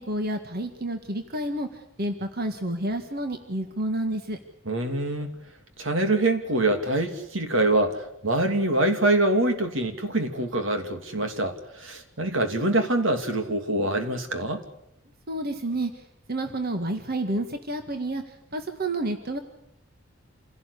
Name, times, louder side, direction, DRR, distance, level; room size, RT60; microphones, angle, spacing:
voice 1, 0.0-1.7 2.0-4.4 15.3-15.9 16.3-18.2 18.5-19.4, right 1 dB, 50° right, 6 dB, 1.8 m, -29 dB
voice 2, 4.6-5.3 5.8-14.6, right 2 dB, 80° right, 6 dB, 2.9 m, -25 dB
27.5 x 17.0 x 8.4 m, 0.80 s
head